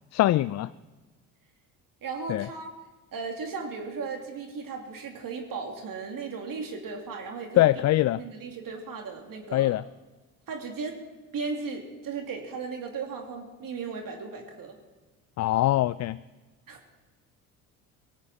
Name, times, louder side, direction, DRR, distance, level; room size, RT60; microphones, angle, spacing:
voice 1, 0.1-0.7 2.3-2.5 7.5-8.2 9.5-9.8 15.4-16.2, left 15 dB, 40° left, 16 dB, 0.4 m, -23 dB
voice 2, 2.0-2.7 3.1-7.6 8.2-9.7 10.5-11.0 11.3-14.8 16.7-16.8, right 4 dB, 50° right, 2 dB, 2.5 m, -36 dB
18.0 x 16.5 x 4.2 m, 1.2 s
hypercardioid pair, 65°, 42 cm